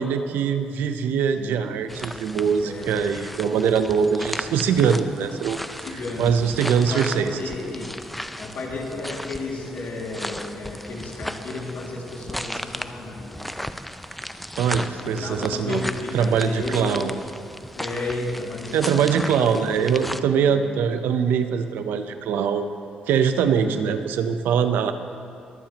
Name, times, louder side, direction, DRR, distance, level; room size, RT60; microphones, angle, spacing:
voice 1, 0.0-5.6 6.2-7.3 14.6-15.8 16.1-17.1 18.7-22.7 23.1-24.9, right 7 dB, 90° right, 9 dB, 0.6 m, -22 dB
sound 1, 1.9-20.2, equal, 5° left, 0.4 m, -36 dB
voice 2, 2.6-3.0 5.7-6.4 6.6-7.9 8.4-13.4 14.9-17.0 17.7-19.6 20.4-20.6 23.5-23.9, left 2 dB, 60° left, -2 dB, 2.2 m, -33 dB
22.0 x 8.9 x 2.9 m, 2.5 s
cardioid pair, 100°, 3 cm